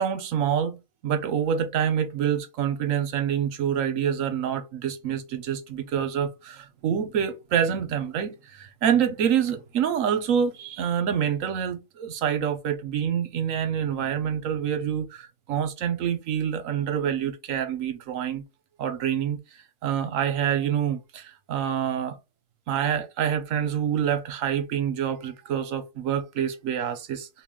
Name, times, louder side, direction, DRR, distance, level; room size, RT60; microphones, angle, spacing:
voice 1, 0.0-18.4 18.8-19.4 19.8-22.2 22.7-27.3, right 8 dB, 65° right, 0.9 m, -26 dB
2.9 x 2.7 x 3.6 m
omnidirectional pair, 1.7 m